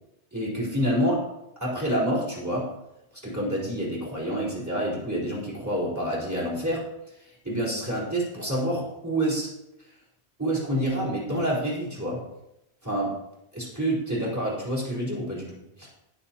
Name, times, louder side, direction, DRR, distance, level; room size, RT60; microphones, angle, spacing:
voice 1, 0.3-1.3 1.6-2.7 3.2-6.9 7.2-9.5 10.4-12.2 12.8-13.2 13.5-15.5 15.8-15.9, right 1 dB, 15° right, -6 dB, 4.4 m, -28 dB
20.0 x 7.2 x 3.0 m, 0.87 s
omnidirectional pair, 1.1 m